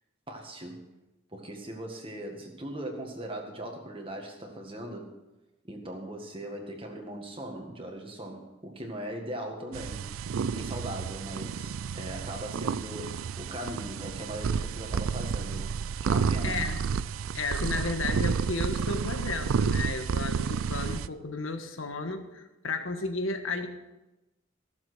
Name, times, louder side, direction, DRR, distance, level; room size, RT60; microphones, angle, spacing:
voice 1, 0.3-0.9 1.3-5.2 5.7-10.1 10.5-16.6, right 1 dB, 25° right, 2 dB, 1.8 m, -39 dB
sound 1, 9.7-21.1, right 6 dB, 80° right, 0.4 m, -31 dB
voice 2, 16.4-16.8 17.3-23.7, left 3 dB, 75° left, 7 dB, 1.4 m, -33 dB
15.5 x 7.3 x 6.2 m, 1.0 s
head